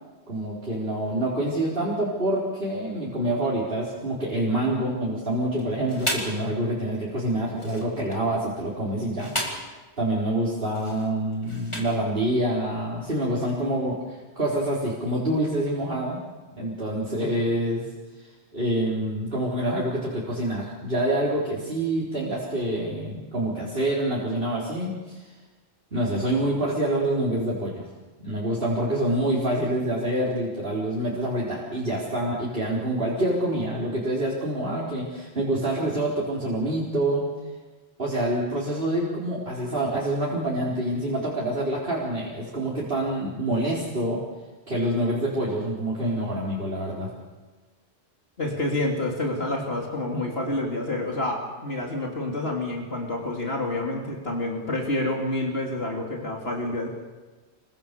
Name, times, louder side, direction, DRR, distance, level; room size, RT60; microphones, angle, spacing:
voice 1, 0.3-9.3 10.0-16.2 16.6-17.9 18.2-25.3 25.9-27.8 28.2-37.3 38.0-44.2 44.7-47.1, right 1 dB, 60° right, -5 dB, 4.6 m, -26 dB
sound 1, 5.6-6.4 7.5-8.3 9.0-9.8 10.7-12.1, equal, 25° left, 4.8 m, -33 dB
voice 2, 48.4-56.9, left 2 dB, 65° left, 0 dB, 3.5 m, -28 dB
29.0 x 23.5 x 6.9 m, 1.3 s
omnidirectional pair, 1.1 m